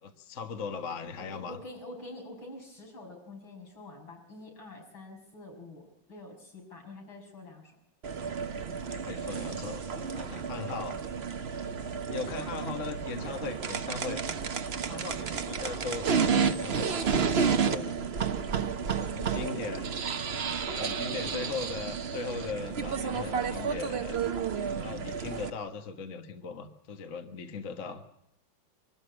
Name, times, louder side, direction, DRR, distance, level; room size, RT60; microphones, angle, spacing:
voice 1, 0.0-1.6 8.9-11.0 12.1-14.2 14.9-18.4 19.0-19.9 20.8-24.2 24.7-28.0, left 5 dB, 40° left, 7 dB, 1.5 m, -39 dB
voice 2, 1.2-7.7 12.4-12.9 18.6-18.8, left 2 dB, 75° left, 0 dB, 6.9 m, -46 dB
sound 1, 8.0-25.5, right 6 dB, 45° right, 0.9 m, -31 dB
24.0 x 13.0 x 9.8 m, 0.80 s
omnidirectional pair, 2.2 m